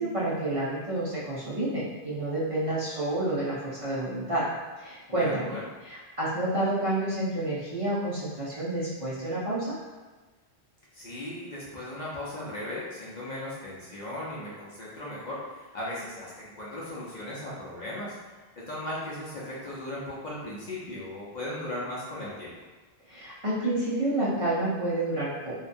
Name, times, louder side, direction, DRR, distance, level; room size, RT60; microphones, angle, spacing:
voice 1, 0.0-4.4 4.8-5.5 5.8-9.7 23.1-25.5, right 1 dB, 40° right, -10 dB, 0.5 m, -29 dB
voice 2, 5.1-5.6 10.9-18.2 18.6-22.5, left 1 dB, 55° left, -7 dB, 0.6 m, -37 dB
2.7 x 2.2 x 2.5 m, 1.3 s
omnidirectional pair, 1.0 m